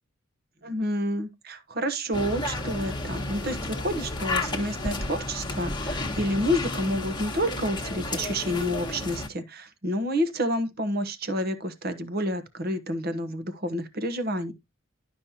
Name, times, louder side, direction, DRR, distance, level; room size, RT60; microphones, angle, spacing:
voice 1, 0.6-14.5, equal, 50° right, 1.2 m, -29 dB
sound 1, 2.1-9.3, left 2 dB, 20° left, 1.3 m, -32 dB
11.5 x 5.3 x 2.8 m
head